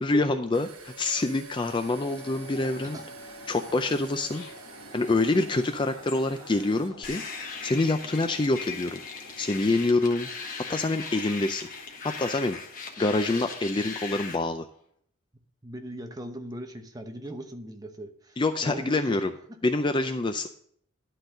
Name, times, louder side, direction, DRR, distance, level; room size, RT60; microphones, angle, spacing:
voice 1, 0.0-0.7 1.0-3.0 3.5-4.4 4.9-7.2 7.6-9.0 9.4-10.3 10.7-11.7 12.0-12.6 13.0-14.7 18.4-19.3 19.6-20.5, left 2 dB, 20° left, 8 dB, 0.4 m, -26 dB
sound 1, 0.5-6.9, right 3 dB, 85° right, 1.0 m, -47 dB
sound 2, 1.9-14.8, left 2 dB, 65° left, 1.9 m, -49 dB
sound 3, 7.0-14.3, left 5 dB, 40° left, 1.3 m, -39 dB
voice 2, 15.6-19.2, right 1 dB, 15° right, 5 dB, 0.8 m, -39 dB
11.5 x 4.0 x 6.5 m, 0.63 s
head